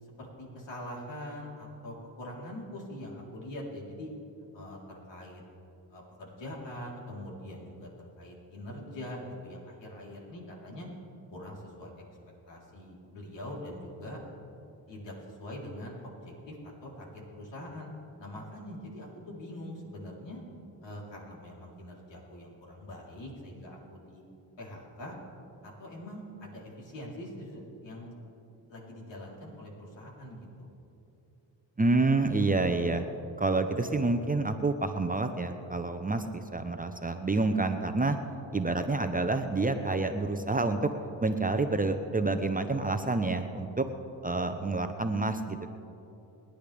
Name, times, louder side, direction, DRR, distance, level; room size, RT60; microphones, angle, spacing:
voice 1, 0.0-4.1 4.5-5.4 5.9-10.9 11.3-12.0 12.5-14.2 14.9-17.9 18.2-20.4 20.8-24.2 24.6-25.1 25.6-28.2 28.7-30.7, left 1 dB, 70° left, -4 dB, 4.0 m, -43 dB
voice 2, 31.8-33.1 33.4-38.2 38.5-40.9 41.2-43.9 44.2-45.7, right 3 dB, 20° right, 6 dB, 0.8 m, -28 dB
29.5 x 10.5 x 3.5 m, 2.9 s
cardioid pair, 85°, 46 cm